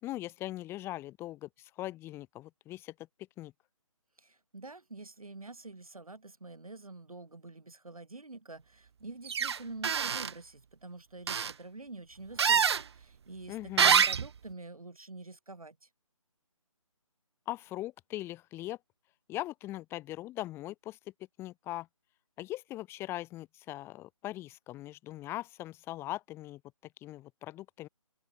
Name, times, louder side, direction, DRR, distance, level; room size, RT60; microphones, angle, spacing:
voice 1, 0.0-2.9 3.4-3.5 13.5-14.0 17.5-18.8 19.3-21.0 21.4-21.9 22.4-26.6 27.0-27.9, left 15 dB, 15° left, 4.5 m, -40 dB
voice 2, 4.2-15.9, right 3 dB, 85° right, 5.7 m, -47 dB
sound 1, 9.3-9.6 9.8-10.3 11.3-11.5 12.4-12.8 13.8-14.3, right 7 dB, 50° right, 0.4 m, -25 dB
figure-of-eight pair, 150°, 18 cm